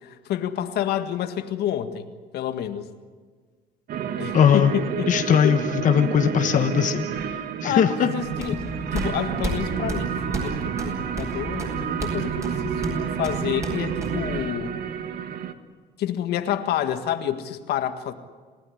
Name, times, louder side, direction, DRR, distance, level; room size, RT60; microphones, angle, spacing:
voice 1, 0.0-2.1 2.3-2.9 4.2-5.5 7.6-14.8 16.0-18.1, left 10 dB, 75° left, 9 dB, 1.8 m, -29 dB
sound 1, 3.9-15.5, right 8 dB, 65° right, 1.6 m, -29 dB
voice 2, 4.3-4.7 5.1-8.1, left 8 dB, 50° left, 7 dB, 1.3 m, -20 dB
sound 2, 8.2-14.4, equal, 15° right, 7.6 m, -34 dB
28.5 x 16.5 x 10.0 m, 1.5 s
cardioid pair, 110°, 17 cm